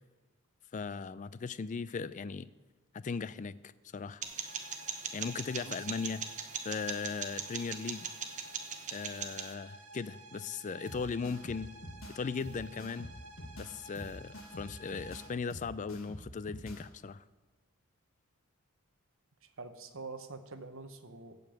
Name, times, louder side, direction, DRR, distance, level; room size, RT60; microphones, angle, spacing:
voice 1, 0.7-2.5 2.9-4.2 5.1-6.2 6.6-8.1 8.9-11.7 12.1-13.1 13.6-17.2, left 5 dB, 35° left, 17 dB, 0.3 m, -38 dB
sound 1, 4.2-9.5, right 6 dB, 35° right, 1.0 m, -40 dB
sound 2, 4.4-15.3, right 2 dB, 75° right, 1.2 m, -53 dB
sound 3, 10.9-16.9, equal, 65° left, 1.6 m, -47 dB
voice 2, 19.4-21.4, right 3 dB, 60° right, 8 dB, 1.0 m, -46 dB
16.0 x 5.3 x 7.7 m, 1.2 s
head